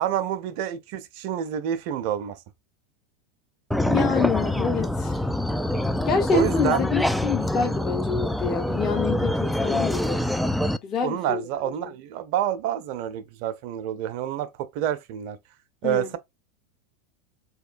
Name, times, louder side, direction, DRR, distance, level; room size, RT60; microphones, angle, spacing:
voice 1, 0.0-2.4 6.3-6.8 11.0-15.4 15.8-16.2, right 10 dB, 60° right, 0.7 m, -28 dB
sound 1, 3.7-10.8, left 1 dB, ahead, 0.3 m, -25 dB
voice 2, 3.9-5.3 6.0-10.2 10.8-11.4 11.8-11.9 15.8-16.2, left 6 dB, 35° left, 1.0 m, -27 dB
4.2 x 3.0 x 2.5 m
hypercardioid pair, 95°, 0 cm